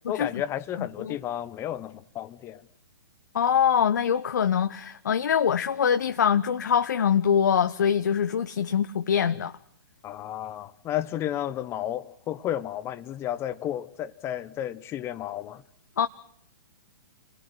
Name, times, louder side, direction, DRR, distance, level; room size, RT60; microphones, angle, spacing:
voice 1, 0.1-2.6 10.0-15.6, left 11 dB, 25° left, 1.1 m, -32 dB
voice 2, 0.8-1.2 3.3-9.5 16.0-16.1, left 8 dB, 60° left, 0.9 m, -24 dB
30.0 x 20.5 x 6.2 m
figure-of-eight pair, 115°, 11 cm